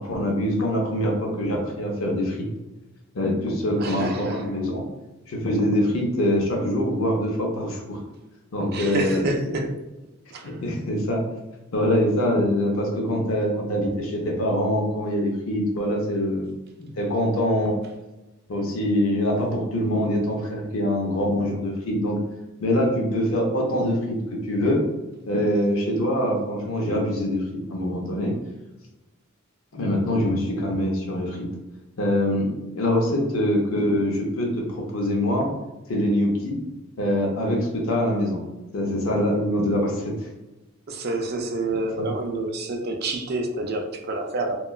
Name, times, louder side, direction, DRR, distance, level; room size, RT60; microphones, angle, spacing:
voice 1, 0.0-2.5 3.1-4.9 5.3-8.0 8.5-9.3 10.4-11.2 11.7-16.5 16.8-17.8 18.5-22.2 22.6-24.8 25.3-27.4 27.7-28.3 29.7-31.4 32.0-35.5 35.9-36.6 37.0-38.4 38.7-40.1, left 1 dB, 85° left, 0 dB, 0.6 m, -24 dB
voice 2, 3.8-4.5 8.7-9.8 10.3-10.6 40.9-44.6, right 2 dB, 50° right, 3 dB, 0.4 m, -28 dB
2.9 x 2.2 x 2.3 m, 1.0 s
head